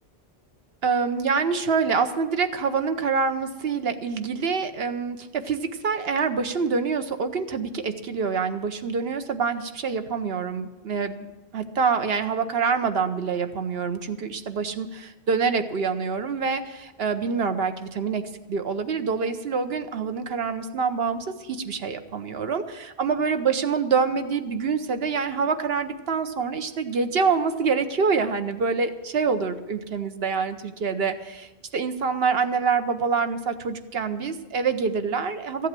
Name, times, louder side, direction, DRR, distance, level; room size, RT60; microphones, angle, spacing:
voice 1, 0.8-11.3 11.5-18.2 18.5-35.7, right 5 dB, 75° right, 8 dB, 1.1 m, -26 dB
14.0 x 8.3 x 7.5 m, 1.1 s
omnidirectional pair, 1.0 m